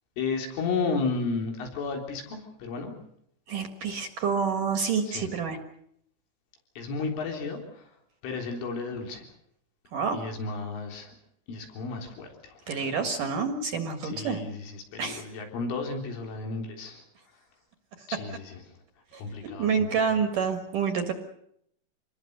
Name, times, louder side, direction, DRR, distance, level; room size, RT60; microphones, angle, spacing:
voice 1, 0.2-2.9 5.1-5.3 6.8-7.9 8.2-9.2 10.1-11.2 11.5-13.0 14.0-17.0 18.1-18.6 19.1-20.2, left 4 dB, 90° left, 2 dB, 6.2 m, -33 dB
voice 2, 3.5-5.6 9.9-10.2 12.7-14.4 15.0-15.2 18.0-18.1 19.1-21.1, right 6 dB, 55° right, 6 dB, 2.6 m, -28 dB
27.5 x 20.5 x 6.7 m, 0.71 s
omnidirectional pair, 5.5 m